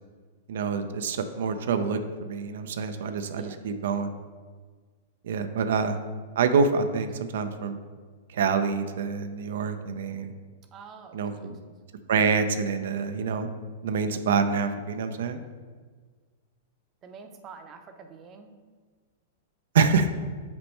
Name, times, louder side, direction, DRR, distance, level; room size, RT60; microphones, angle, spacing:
voice 1, 0.5-4.1 5.2-6.0 6.4-7.8 8.3-10.3 11.1-11.5 12.1-13.5 13.8-15.4 19.7-20.1, right 5 dB, 75° right, 9 dB, 0.4 m, -26 dB
voice 2, 3.3-3.6 10.7-11.7 17.0-18.5, right 5 dB, 30° right, 6 dB, 0.7 m, -47 dB
7.1 x 4.2 x 3.2 m, 1.5 s
hypercardioid pair, 125°, 0 cm